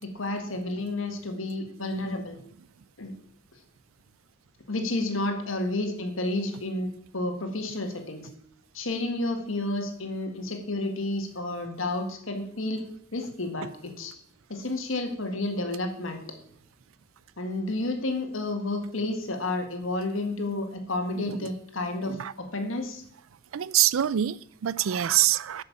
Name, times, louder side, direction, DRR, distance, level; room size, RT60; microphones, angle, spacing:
voice 1, 0.0-2.4 3.0-3.1 4.7-8.3 8.7-12.8 13.1-14.1 14.5-16.2 17.4-23.0, left 2 dB, 85° left, 5 dB, 1.9 m, -31 dB
voice 2, 21.1-21.5 22.0-22.3 23.5-25.6, right 12 dB, 90° right, 19 dB, 0.4 m, -25 dB
8.5 x 6.6 x 7.2 m, 0.66 s
head